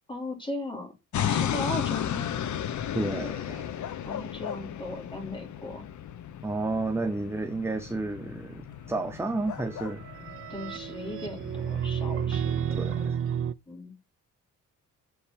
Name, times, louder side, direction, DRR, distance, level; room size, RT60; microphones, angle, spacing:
voice 1, 0.1-0.9 1.2-2.4 4.0-5.8 10.5-12.7 13.7-13.9, left 2 dB, 15° left, 2.8 m, -37 dB
sound 1, 1.1-13.1, left 9 dB, 65° left, 0.9 m, -35 dB
voice 2, 2.9-3.7 6.4-10.0 12.7-13.2, right 2 dB, 10° right, 0.7 m, -31 dB
sound 2, 9.6-13.5, right 8 dB, 45° right, 0.5 m, -31 dB
6.9 x 4.8 x 5.1 m
cardioid pair, 100°, 32 cm